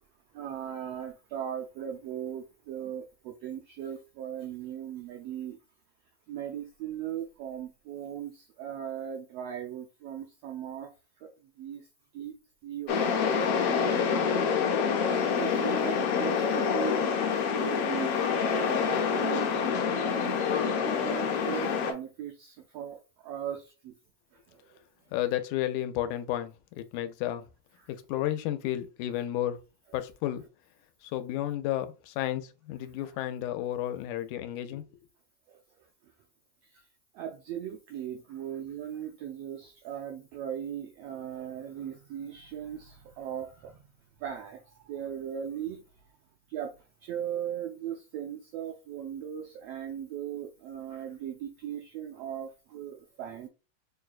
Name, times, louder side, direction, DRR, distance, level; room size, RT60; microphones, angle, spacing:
voice 1, 0.3-5.6 6.3-10.9 11.2-11.9 12.1-12.3 12.6-14.3 15.0-19.5 20.0-20.4 20.8-23.9 24.3-24.8 27.8-27.9 33.0-33.1 35.5-35.6 36.6-36.9 37.1-43.9 44.2-45.8 46.5-46.7 47.0-53.5, right 9 dB, 85° right, 1.4 m, -38 dB
sound 1, 12.9-21.9, left 6 dB, 70° left, 1.5 m, -27 dB
voice 2, 25.1-27.4 27.9-29.6 29.9-30.4 31.0-34.8, left 13 dB, 85° left, 2.0 m, -32 dB
6.2 x 2.2 x 2.4 m
omnidirectional pair, 3.3 m